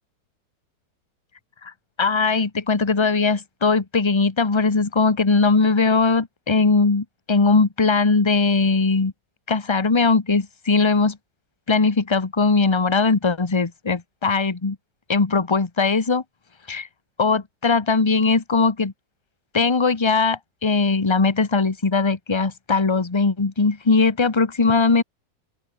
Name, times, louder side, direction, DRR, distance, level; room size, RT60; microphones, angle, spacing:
voice 1, 2.0-9.1 9.5-11.2 11.7-14.8 15.1-16.2 16.7-16.9 17.2-18.9 19.5-25.0, left 4 dB, 20° left, 1.1 m, -20 dB
open air
omnidirectional pair, 1.9 m